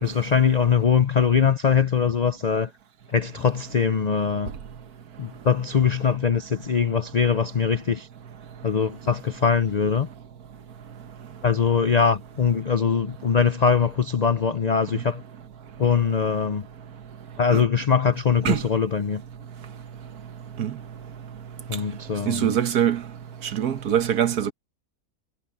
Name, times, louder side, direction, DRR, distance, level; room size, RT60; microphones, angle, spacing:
voice 1, 0.0-2.7 3.1-4.5 5.2-8.1 8.6-10.1 11.4-15.2 15.8-16.7 17.4-19.2 21.7-22.6, left 6 dB, 60° left, 0.4 m, -22 dB
voice 2, 22.3-23.0 23.5-24.5, right 10 dB, 75° right, 1.6 m, -23 dB
omnidirectional pair, 1.6 m